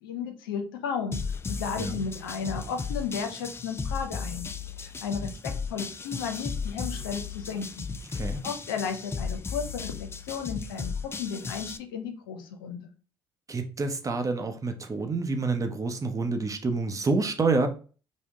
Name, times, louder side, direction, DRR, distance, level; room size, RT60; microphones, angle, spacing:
voice 1, 0.0-1.2 1.5-4.5 4.8-7.9 8.4-9.9 10.2-12.8, left 6 dB, 90° left, 0.5 m, -34 dB
sound 1, 1.1-11.8, left 5 dB, 20° left, 0.3 m, -35 dB
voice 2, 13.5-17.7, right 3 dB, 30° right, 0.7 m, -28 dB
3.5 x 2.1 x 3.4 m
hypercardioid pair, 60°, 11 cm